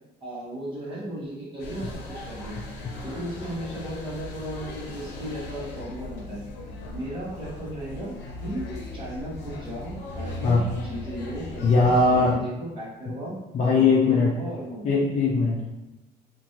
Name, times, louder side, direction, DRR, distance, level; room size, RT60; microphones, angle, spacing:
voice 1, 0.2-2.6 3.0-6.4 6.9-8.1 8.4-8.7 8.9-13.4 13.7-15.0, equal, 30° right, -9 dB, 1.3 m, -35 dB
sound 1, 1.6-12.3, left 2 dB, 85° left, 0.7 m, -38 dB
voice 2, 11.6-12.4 13.5-14.3 14.8-15.6, left 4 dB, 45° left, -5 dB, 0.6 m, -20 dB
2.9 x 2.5 x 2.8 m, 0.98 s
cardioid pair, 110°, 17 cm